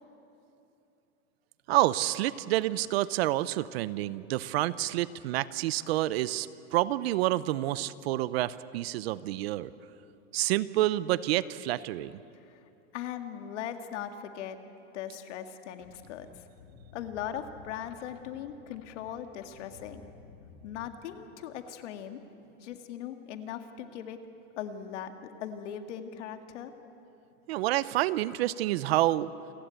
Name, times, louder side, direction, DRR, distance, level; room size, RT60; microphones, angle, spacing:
voice 1, 1.7-9.7 10.3-12.1 27.5-29.3, right 15 dB, 55° right, 17 dB, 0.7 m, -28 dB
voice 2, 12.9-14.6 14.9-16.3 16.9-20.1 20.6-22.2 22.6-24.2 24.6-26.7, left 9 dB, 65° left, 7 dB, 2.0 m, -39 dB
sound 1, 15.8-20.9, left 5 dB, 80° left, 2.3 m, -54 dB
28.0 x 16.5 x 9.0 m, 2.8 s
supercardioid pair, 165°, 38 cm